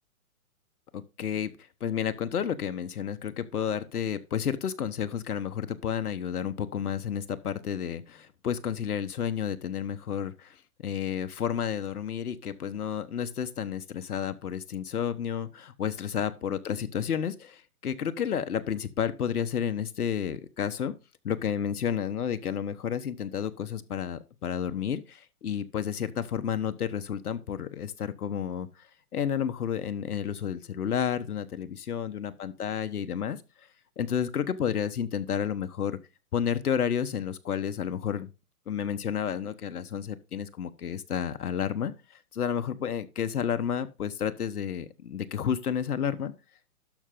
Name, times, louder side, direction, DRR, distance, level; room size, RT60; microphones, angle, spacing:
voice 1, 0.9-1.5 1.8-10.5 10.8-20.9 21.2-28.7 29.1-33.4 34.0-36.0 36.3-38.3 38.7-41.9 42.3-46.3, left 8 dB, 75° left, 1.2 m, -31 dB
12.0 x 5.6 x 3.8 m
hypercardioid pair, 150°, 45 cm